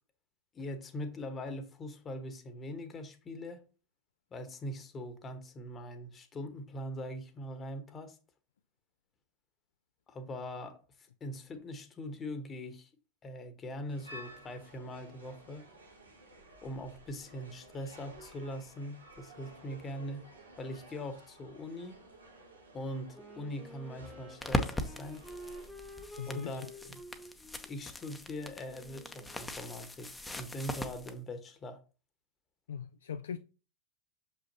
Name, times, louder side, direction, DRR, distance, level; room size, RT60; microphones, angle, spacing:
voice 1, 0.5-3.6 4.3-8.2 10.1-10.8 11.2-12.9 13.2-15.6 16.6-20.2 20.6-22.0 22.7-25.2 26.3-26.6 27.6-30.1 30.4-31.8, left 1 dB, 25° left, 1.1 m, -41 dB
sound 1, 13.9-25.7, right 1 dB, 90° right, 1.5 m, -54 dB
Wind instrument woodwind instrument, 23.1-29.7, equal, 5° right, 1.3 m, -51 dB
sound 2, 24.4-31.1, left 1 dB, 10° left, 0.8 m, -40 dB
voice 2, 26.2-26.7 32.7-33.4, left 7 dB, 70° left, 0.4 m, -40 dB
6.8 x 5.4 x 2.8 m
figure-of-eight pair, 90°, 0 cm